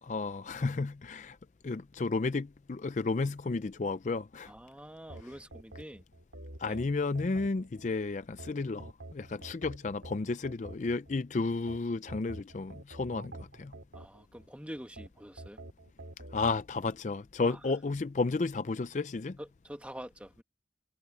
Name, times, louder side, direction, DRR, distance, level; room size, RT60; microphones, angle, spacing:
voice 1, 0.0-1.4 1.6-4.5 6.6-13.7 16.3-19.4, left 3 dB, 40° left, 0.4 m, -32 dB
voice 2, 4.5-6.0 6.7-6.8 13.9-15.6 17.4-17.6 19.4-20.4, equal, 5° right, 1.8 m, -46 dB
sound 1, 5.1-7.9 8.4-11.2 11.7-14.5 15.0-16.6, right 1 dB, 90° right, 4.4 m, -47 dB
head